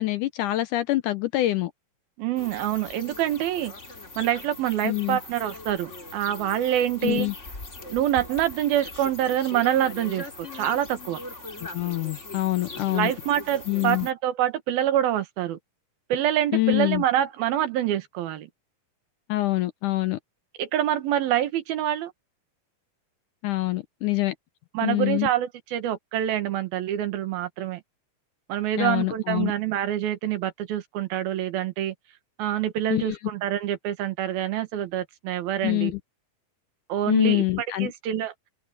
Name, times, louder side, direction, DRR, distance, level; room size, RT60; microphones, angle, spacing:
voice 1, 0.0-1.7 4.8-5.2 7.0-7.3 11.7-13.1 13.7-14.1 16.5-17.0 19.3-20.2 23.4-24.3 24.8-25.3 28.8-29.5 32.9-33.2 35.6-36.0 37.1-37.9, left 18 dB, 75° left, 2.0 m, -25 dB
voice 2, 2.2-3.7 4.2-7.3 7.9-11.2 12.9-15.6 16.1-18.5 20.6-22.1 24.8-27.8 28.5-32.0 32.4-35.9 36.9-37.4 37.8-38.3, right 11 dB, 85° right, 3.3 m, -26 dB
sound 1, 2.4-14.1, left 2 dB, 20° left, 2.9 m, -41 dB
omnidirectional pair, 4.2 m